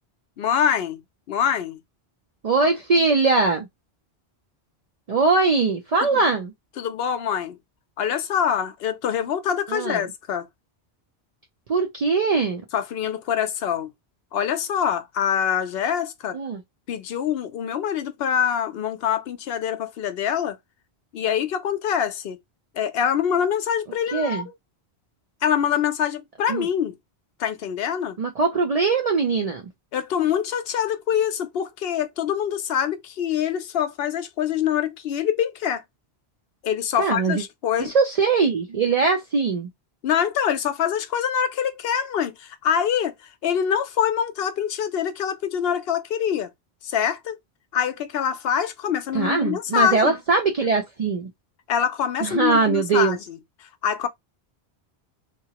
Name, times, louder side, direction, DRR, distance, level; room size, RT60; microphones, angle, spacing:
voice 1, 0.4-1.0 1.3-1.8 6.1-6.2 6.8-7.6 8.0-10.4 12.7-13.9 14.3-16.4 16.9-20.6 21.1-22.4 22.8-24.4 25.4-27.0 27.4-28.2 29.9-35.8 36.6-37.9 40.0-43.1 43.4-46.5 46.8-47.3 47.7-50.2 51.7-54.1, left 8 dB, 70° left, 0.7 m, -25 dB
voice 2, 2.4-3.7 5.1-6.5 9.7-10.1 11.7-12.6 16.3-16.6 24.1-24.5 26.5-26.7 28.2-29.6 37.0-37.4 37.8-39.7 49.1-51.3 52.2-53.2, right 4 dB, 55° right, 0.4 m, -21 dB
2.9 x 2.3 x 2.8 m
omnidirectional pair, 1.1 m